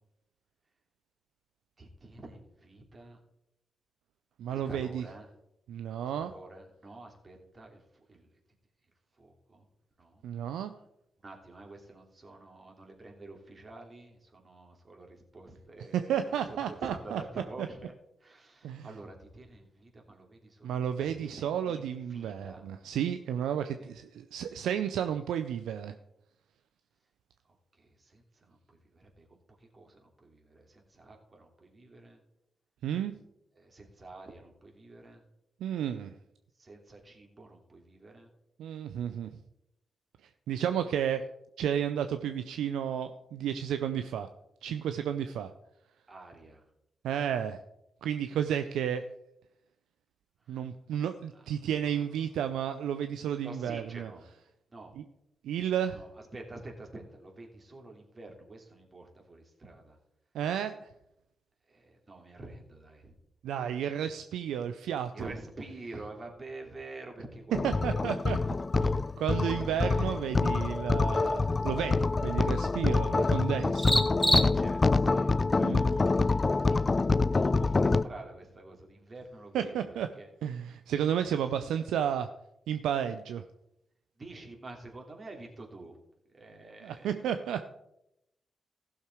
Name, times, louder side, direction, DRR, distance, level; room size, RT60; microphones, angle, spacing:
voice 1, 1.8-3.2 4.5-5.3 6.2-7.8 8.1-8.3 9.2-9.6 10.0-10.2 11.2-17.9 18.2-21.8 22.1-22.7 23.8-23.9 27.8-29.3 29.7-32.2 33.6-35.2 36.6-38.3 46.1-46.6 51.0-51.1 53.4-54.2 54.7-54.9 55.9-60.0 61.7-63.1 65.1-68.5 69.6-70.4 72.4-73.3 74.4-80.3 84.2-86.0 86.3-87.1, right 2 dB, 40° right, 1 dB, 3.1 m, -48 dB
voice 2, 4.4-5.0 5.7-6.3 10.2-10.7 15.9-17.2 18.6-18.9 20.6-25.9 32.8-33.2 35.6-36.1 38.6-39.3 40.5-41.2 41.6-44.3 44.6-45.5 47.0-47.6 48.0-49.0 50.5-54.1 55.0-55.1 55.4-56.0 60.3-60.7 63.4-65.3 67.6-68.4 68.8-73.9 75.6-75.8 79.5-80.1 80.4-82.3 82.7-83.4 86.8-87.6, right 9 dB, 80° right, 9 dB, 0.5 m, -32 dB
sound 1, 67.5-78.0, left 3 dB, 35° left, 0.4 m, -26 dB
sound 2, 67.8-75.0, equal, 5° left, 2.5 m, -35 dB
15.5 x 6.6 x 4.6 m, 0.83 s
hypercardioid pair, 40°, 0 cm